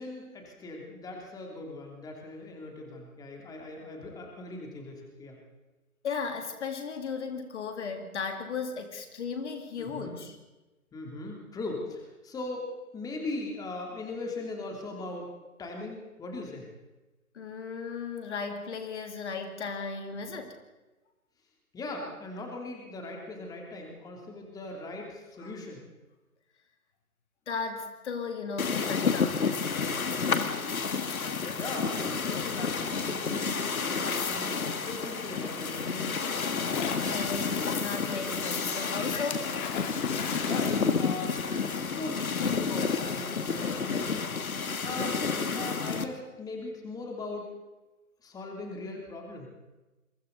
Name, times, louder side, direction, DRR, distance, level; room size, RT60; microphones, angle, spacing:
voice 1, 0.0-5.4 9.8-10.2 10.9-15.3 15.6-16.7 21.7-25.8 31.5-34.6 34.9-36.2 40.4-41.4 41.8-44.3 44.8-47.5 48.2-49.5, left 2 dB, 10° left, 1 dB, 3.1 m, -39 dB
voice 2, 6.0-10.4 17.3-20.6 25.4-25.6 27.5-29.6 36.9-39.5, left 5 dB, 50° left, 5 dB, 3.0 m, -36 dB
sound 1, 28.6-46.0, left 5 dB, 70° left, 2.1 m, -30 dB
Splash splatter, 36.7-37.6 39.3-41.7, left 8 dB, 30° left, 2.3 m, -38 dB
28.5 x 23.5 x 4.1 m, 1.1 s
figure-of-eight pair, 140°, 44 cm